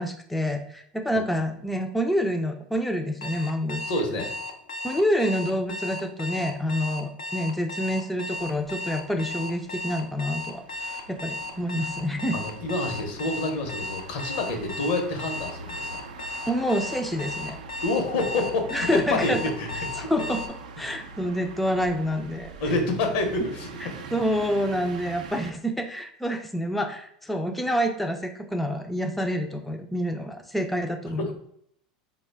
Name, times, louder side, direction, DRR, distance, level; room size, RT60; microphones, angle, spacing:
voice 1, 0.0-3.9 4.8-12.4 16.5-17.6 18.7-19.4 20.0-20.4 20.8-22.5 23.8-31.3, equal, 5° left, 3 dB, 0.3 m, -27 dB
Alarm, 3.2-20.5, left 2 dB, 90° left, 0.4 m, -35 dB
voice 2, 3.9-4.3 10.8-11.0 12.3-16.0 17.8-20.1 22.6-24.1, left 2 dB, 65° left, 4 dB, 0.8 m, -28 dB
sound 1, 8.3-25.5, right 4 dB, 80° right, 0.4 m, -43 dB
3.7 x 2.2 x 3.4 m, 0.69 s
hypercardioid pair, 90°, 4 cm